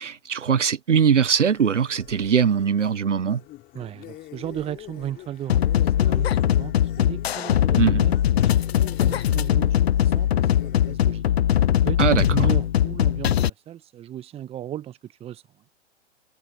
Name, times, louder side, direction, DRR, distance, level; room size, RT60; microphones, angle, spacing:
voice 1, 0.0-3.4 7.8-8.0 12.0-12.5, right 7 dB, 80° right, 0.9 m, -21 dB
sound 1, 1.5-11.0, left 15 dB, 25° left, 5.1 m, -44 dB
voice 2, 3.7-11.2 11.8-15.4, right 11 dB, 15° right, 1.2 m, -36 dB
sound 2, 5.5-13.5, left 11 dB, 60° left, 0.6 m, -21 dB
figure-of-eight pair, 115°, 36 cm